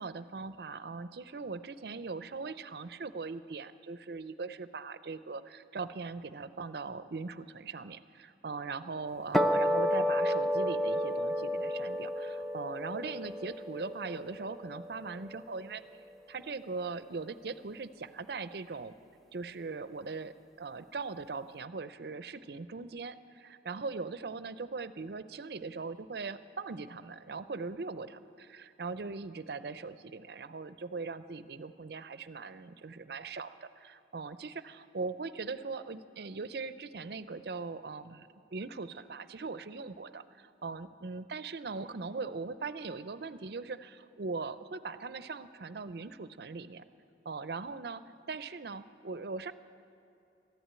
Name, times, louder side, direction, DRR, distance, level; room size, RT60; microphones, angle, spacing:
voice 1, 0.0-15.8 16.3-18.9 19.3-46.8 47.2-48.0 48.3-49.5, right 4 dB, 60° right, 13 dB, 0.5 m, -40 dB
sound 1, 9.3-15.9, equal, ahead, 0.5 m, -31 dB
14.0 x 11.0 x 8.9 m, 2.8 s
head